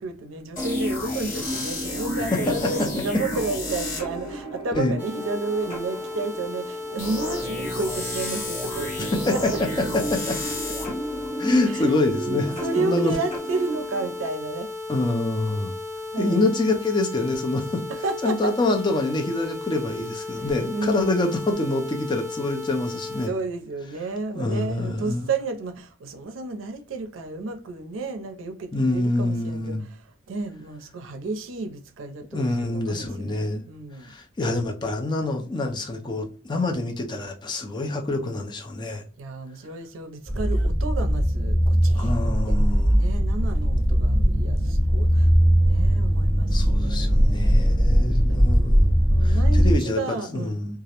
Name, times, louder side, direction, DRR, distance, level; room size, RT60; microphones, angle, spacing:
voice 1, 0.0-9.4 11.6-14.7 16.1-16.5 17.9-18.5 20.4-21.3 23.3-34.1 39.2-42.6 43.0-45.3 45.7-48.5 49.1-50.5, right 3 dB, 85° right, 0.4 m, -32 dB
sound 1, 0.6-14.3, left 1 dB, 45° left, 1.1 m, -32 dB
sound 2, 5.0-23.3, left 3 dB, 10° right, 0.7 m, -35 dB
voice 2, 9.0-10.4 11.4-13.1 14.9-15.7 16.2-17.8 18.2-23.3 24.4-25.3 28.7-29.8 32.3-33.6 34.0-39.0 41.9-43.1 46.5-48.9 49.2-50.0 50.3-50.8, left 2 dB, 25° left, 0.4 m, -26 dB
sound 3, 40.3-49.7, equal, 80° left, 0.9 m, -20 dB
2.3 x 2.0 x 2.8 m
head